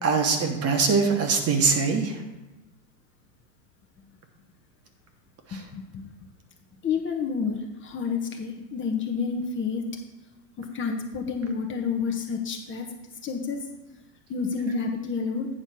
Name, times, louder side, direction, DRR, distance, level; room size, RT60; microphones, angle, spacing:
voice 1, 0.0-2.2 5.5-5.6, right 5 dB, 30° right, 5 dB, 1.2 m, -22 dB
voice 2, 6.8-7.6 7.8-9.8 10.7-12.9 13.2-13.6 14.3-15.5, left 5 dB, 25° left, 2 dB, 0.9 m, -29 dB
8.9 x 4.2 x 6.1 m, 1.1 s
supercardioid pair, 120°, 49 cm